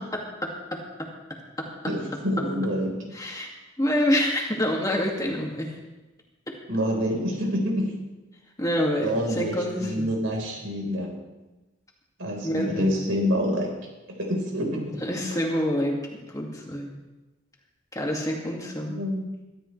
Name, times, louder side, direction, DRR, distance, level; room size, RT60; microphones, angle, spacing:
voice 1, 0.4-0.8 1.6-1.7 3.1-3.5 3.8-5.7 8.6-10.1 12.4-12.9 15.0-16.0 16.3-16.9 17.9-19.0, equal, 15° left, -1 dB, 2.2 m, -27 dB
voice 2, 1.9-2.9 6.7-7.9 9.0-11.1 12.2-13.7 14.1-14.9 15.3-15.4 18.9-19.3, equal, 80° right, 0 dB, 4.3 m, -27 dB
22.5 x 13.0 x 3.3 m, 1.1 s
head